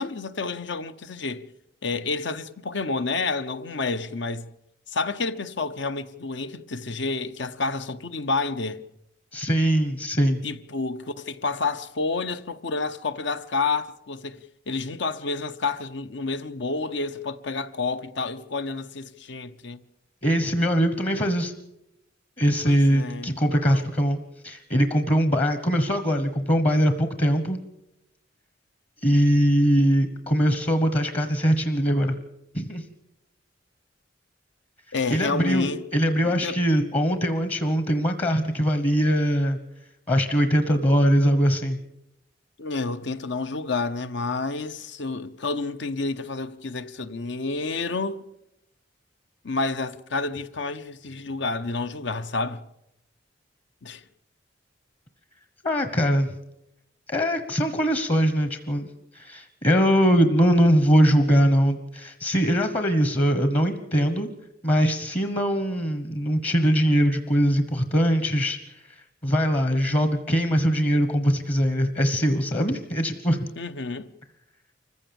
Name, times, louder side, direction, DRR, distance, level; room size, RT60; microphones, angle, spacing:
voice 1, 0.0-1.4 1.8-4.5 4.9-8.8 10.4-14.4 14.7-19.8 22.6-23.3 23.7-23.9 34.9-35.8 36.2-36.6 42.6-48.3 49.4-52.6 53.8-54.0 73.6-74.1, left 3 dB, 70° left, 0.9 m, -29 dB
voice 2, 9.3-10.4 20.2-21.5 22.4-24.2 24.4-27.6 29.0-32.2 32.5-32.8 35.1-39.6 40.1-41.8 55.6-56.3 57.1-58.9 59.1-64.3 64.6-69.0 69.2-73.5, equal, 35° left, 1.2 m, -22 dB
25.5 x 15.5 x 7.1 m
head